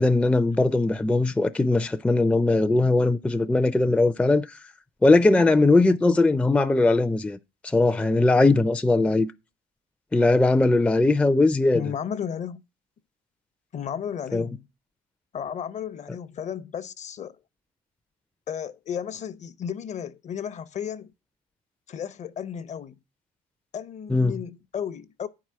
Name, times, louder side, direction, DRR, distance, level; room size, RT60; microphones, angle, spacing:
voice 1, 0.0-4.6 5.0-7.4 7.6-9.3 10.1-11.8 14.3-14.5 24.1-24.4, left 2 dB, 5° left, 0.4 m, -20 dB
voice 2, 11.7-12.6 13.7-14.7 15.3-17.4 18.5-21.1 21.9-23.0 23.7-25.3, left 8 dB, 45° left, 0.7 m, -33 dB
9.2 x 4.7 x 7.4 m
cardioid pair, 110°, 17 cm